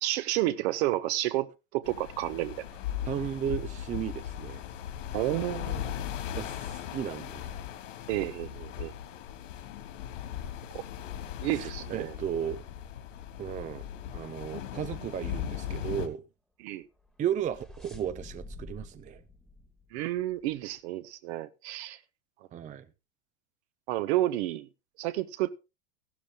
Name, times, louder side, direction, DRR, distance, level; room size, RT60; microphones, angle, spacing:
voice 1, 0.0-2.6 5.1-5.9 8.1-8.9 10.7-10.8 11.4-12.1 16.6-16.8 19.9-22.0 23.9-24.7 25.0-25.5, right 16 dB, 55° right, 1.2 m, -30 dB
sound 1, 1.8-16.1, left 10 dB, 70° left, 2.9 m, -38 dB
voice 2, 3.0-4.6 6.3-7.5 11.5-12.6 13.4-13.9 14.1-16.2 17.2-19.2 22.5-22.8, right 9 dB, 20° right, 0.6 m, -34 dB
sound 2, 16.9-20.6, left 2 dB, ahead, 1.7 m, -48 dB
15.5 x 12.5 x 2.4 m
hypercardioid pair, 120°, 40 cm